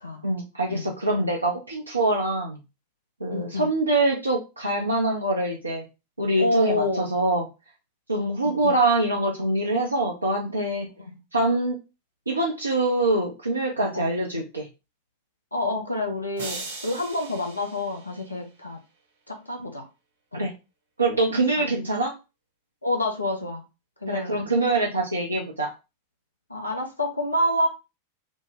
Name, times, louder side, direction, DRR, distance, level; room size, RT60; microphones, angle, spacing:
voice 1, 0.2-2.6 3.2-5.8 6.2-7.5 8.1-10.9 11.3-11.8 12.3-14.7 20.3-20.5 21.0-22.1 24.1-25.7, right 2 dB, 85° right, -2 dB, 0.5 m, -24 dB
voice 2, 3.3-3.7 6.4-7.1 8.4-8.8 11.1-11.2 13.8-14.1 15.5-18.8 19.3-19.9 20.3-20.5 21.6-21.7 22.8-23.6 24.0-24.4 26.5-27.7, left 1 dB, 85° left, 3 dB, 0.7 m, -28 dB
sound 1, 16.4-18.6, right 3 dB, 70° right, 1.1 m, -39 dB
3.0 x 2.1 x 3.5 m, 0.27 s
figure-of-eight pair, 90°, 0 cm